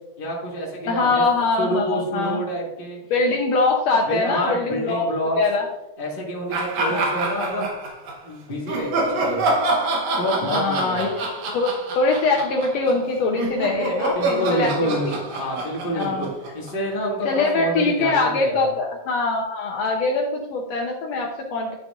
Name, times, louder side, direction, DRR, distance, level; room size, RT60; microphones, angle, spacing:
voice 1, 0.2-1.2 1.6-3.0 4.1-5.4 6.0-7.7 8.2-9.5 10.2-11.1 14.1-16.3 16.5-18.7, right 1 dB, 20° left, -4 dB, 1.5 m, -27 dB
voice 2, 0.9-2.4 3.1-5.1 5.4-5.7 6.9-7.7 10.5-11.2 11.5-15.0 15.9-16.3 17.3-21.8, left 3 dB, 70° left, 1 dB, 1.8 m, -23 dB
sound 1, 6.5-8.2 8.7-16.9, right 2 dB, 70° right, 2.3 m, -26 dB
11.0 x 6.3 x 2.4 m, 1.0 s
omnidirectional pair, 3.5 m